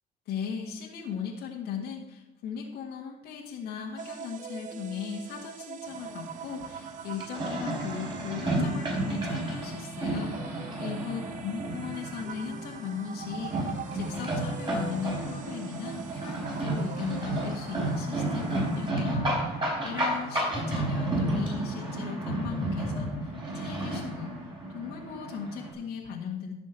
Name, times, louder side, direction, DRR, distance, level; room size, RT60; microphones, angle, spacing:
voice 1, 0.3-26.5, left 7 dB, 75° left, -2 dB, 1.7 m, -38 dB
sound 1, 4.0-18.9, right 8 dB, 50° right, 0.8 m, -43 dB
sound 2, 5.9-25.7, right 1 dB, 30° right, 4.6 m, -32 dB
Telephone, 19.1-19.3 20.5-21.2 22.4-23.2, left 1 dB, 5° left, 2.9 m, -35 dB
15.0 x 6.2 x 4.4 m, 0.99 s
cardioid pair, 110°, 17 cm